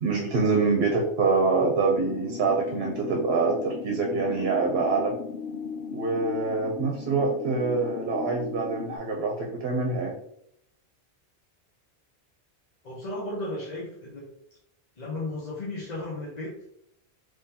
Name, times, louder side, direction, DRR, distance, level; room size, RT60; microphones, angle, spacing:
voice 1, 0.0-5.1 5.9-10.1, right 4 dB, 70° right, 1 dB, 0.9 m, -25 dB
sound 1, 2.0-9.0, left 6 dB, 80° left, 0.8 m, -37 dB
voice 2, 12.8-14.3 15.0-16.6, left 2 dB, 45° left, -5 dB, 0.9 m, -34 dB
3.7 x 3.2 x 2.8 m, 0.72 s
omnidirectional pair, 1.1 m